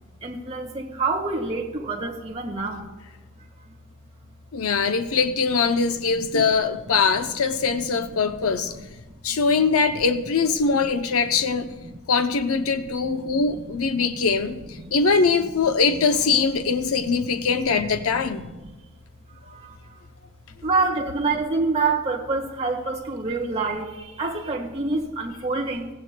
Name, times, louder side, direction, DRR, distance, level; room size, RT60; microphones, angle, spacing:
voice 1, 0.2-2.9 4.8-5.1 6.1-6.3 7.9-8.5 10.8-10.9 11.4-12.0 12.7-13.4 13.9-14.2 14.7-14.9 16.6-17.8 18.1-18.7 19.3-20.0 20.6-25.9, right 3 dB, 30° right, 1.3 m, -28 dB
voice 2, 4.5-8.7 9.2-11.7 12.1-18.5, left 5 dB, 80° left, 0.6 m, -22 dB
16.5 x 16.0 x 2.2 m
head